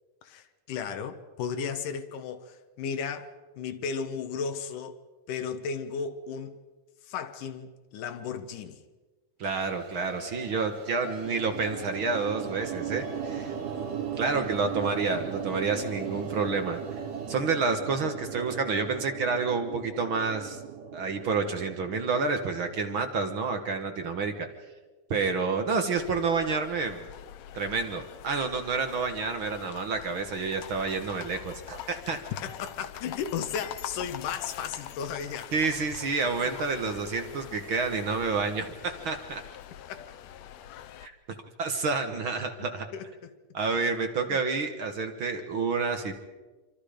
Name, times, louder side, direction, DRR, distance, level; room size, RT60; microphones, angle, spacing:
voice 1, 0.2-5.0 5.3-6.6 7.0-8.8 32.4-35.5 39.9-40.2 42.9-43.3 44.3-44.4, left 6 dB, 90° left, 2.8 m, -35 dB
voice 2, 9.4-13.5 14.2-16.8 17.3-20.6 20.9-24.5 25.1-27.1 27.5-32.2 35.5-39.4 41.0-41.1 41.6-42.9 43.5-46.1, right 4 dB, 50° right, 1.8 m, -29 dB
sound 1, 9.7-17.4, right 3 dB, 65° right, 3.8 m, -45 dB
sound 2, 11.2-23.5, right 8 dB, 85° right, 3.1 m, -37 dB
sound 3, 26.0-41.1, left 11 dB, 70° left, 1.9 m, -44 dB
27.5 x 25.0 x 5.1 m
omnidirectional pair, 3.6 m